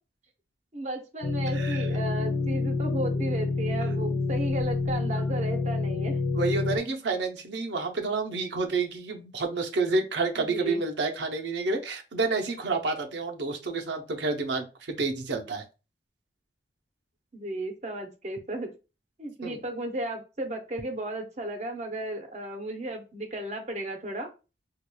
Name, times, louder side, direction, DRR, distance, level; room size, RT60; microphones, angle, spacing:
voice 1, 0.7-6.2 6.8-7.0 10.4-10.8 17.3-18.7 19.2-24.3, right 1 dB, 35° right, 5 dB, 0.7 m, -34 dB
sound 1, 1.2-6.8, left 3 dB, 60° left, 0.5 m, -28 dB
voice 2, 1.5-1.9 6.3-15.6 19.4-19.6, right 3 dB, 70° right, 3 dB, 0.8 m, -29 dB
4.6 x 2.5 x 2.3 m, 0.30 s
head